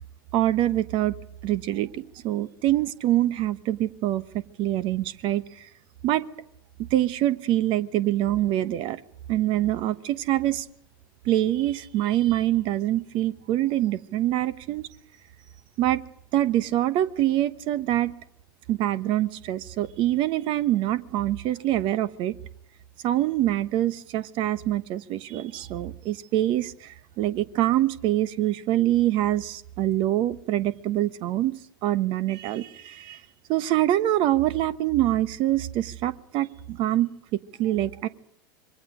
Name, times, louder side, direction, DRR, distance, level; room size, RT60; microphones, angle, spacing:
voice 1, 0.3-1.1 1.4-5.4 6.0-6.3 6.8-9.0 9.3-10.6 11.2-14.9 15.8-16.0 16.3-18.1 18.7-22.4 23.0-33.2 33.5-38.1, right 13 dB, 45° right, 1.2 m, -25 dB
26.5 x 23.0 x 5.1 m
figure-of-eight pair, 85°, 12 cm